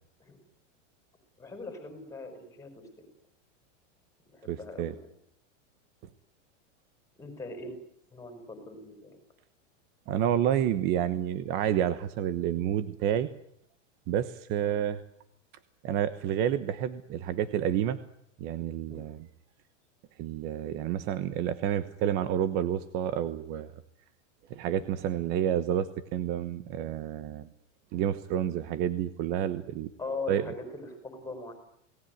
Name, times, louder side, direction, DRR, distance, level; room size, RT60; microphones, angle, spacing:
voice 1, 1.4-2.8 4.3-5.1 7.2-7.8 8.1-9.2 14.6-14.8 18.9-19.0 30.0-31.5, left 3 dB, 10° left, 7 dB, 5.2 m, -40 dB
voice 2, 4.5-4.9 10.1-13.3 14.1-15.0 15.8-18.0 18.4-19.2 20.2-23.7 24.5-27.5 27.9-29.9 30.3-30.4, right 10 dB, 25° right, 13 dB, 1.0 m, -29 dB
28.5 x 19.0 x 9.5 m, 0.72 s
supercardioid pair, 175°, 38 cm